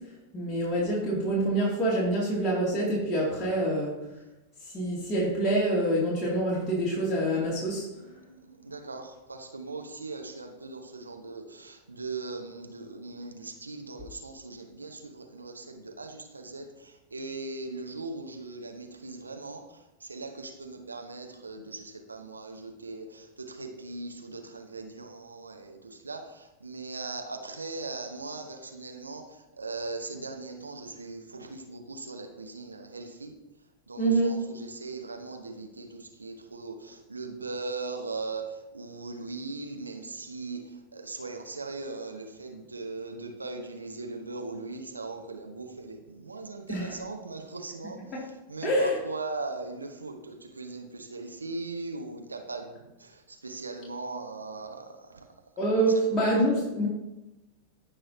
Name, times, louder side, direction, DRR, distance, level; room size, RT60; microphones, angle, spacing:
voice 1, 0.3-4.0 4.6-7.9 34.0-34.4 46.7-47.0 48.1-48.3 48.6-49.0 55.6-56.9, right 1 dB, 20° left, -6 dB, 2.5 m, -26 dB
voice 2, 8.6-15.0 15.3-16.6 17.1-19.6 20.1-23.0 23.6-25.8 26.0-26.2 26.6-29.2 29.6-33.3 33.9-34.3 34.8-35.9 36.2-38.4 38.7-40.6 40.9-48.0 48.5-52.8 53.4-54.8, right 3 dB, 80° right, 4 dB, 1.0 m, -39 dB
16.0 x 5.5 x 2.8 m, 0.97 s
figure-of-eight pair, 90°, 0 cm